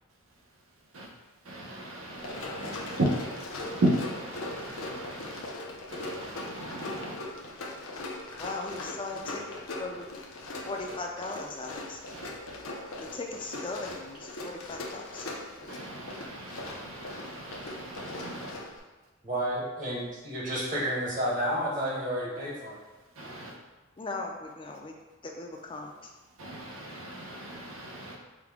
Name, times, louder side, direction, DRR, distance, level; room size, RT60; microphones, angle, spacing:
voice 1, 0.3-7.9 12.1-12.3 15.4-18.6 22.8-23.6 26.3-28.2, right 1 dB, 80° right, 0 dB, 0.7 m, -36 dB
Run, 2.1-18.8, left 2 dB, 80° left, 0.6 m, -40 dB
voice 2, 8.4-9.4 9.8-10.1 10.6-12.0 13.1-15.3 24.0-24.9 25.2-26.1, left 3 dB, 25° left, 1 dB, 0.4 m, -38 dB
voice 3, 19.2-22.8, equal, 40° right, -5 dB, 1.0 m, -31 dB
5.0 x 2.2 x 3.5 m, 1.2 s
head